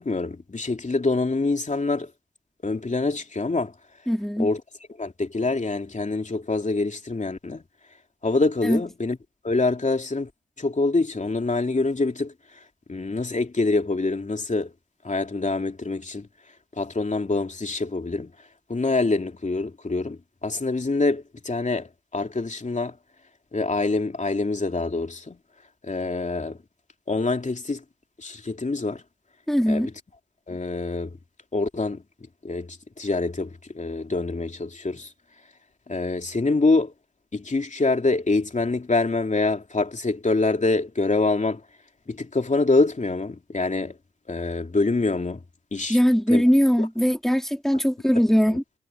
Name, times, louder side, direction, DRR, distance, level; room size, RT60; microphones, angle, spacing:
voice 1, 0.0-2.1 2.6-3.7 4.4-4.6 5.0-7.6 8.2-9.2 9.4-10.3 10.6-12.3 12.9-14.7 15.0-16.3 16.8-18.3 18.7-21.9 22.1-22.9 23.5-25.4 25.8-26.6 27.1-27.8 28.2-29.0 29.7-29.9 30.5-31.2 31.5-32.0 32.4-35.1 35.9-36.9 37.3-41.6 42.1-43.9 44.3-45.4 45.7-46.0 46.3-46.4, left 3 dB, 40° left, 2.9 m, -25 dB
voice 2, 4.1-4.5 8.6-8.8 29.5-29.9 45.9-48.6, equal, ahead, 3.6 m, -20 dB
cardioid pair, 55°, 20 cm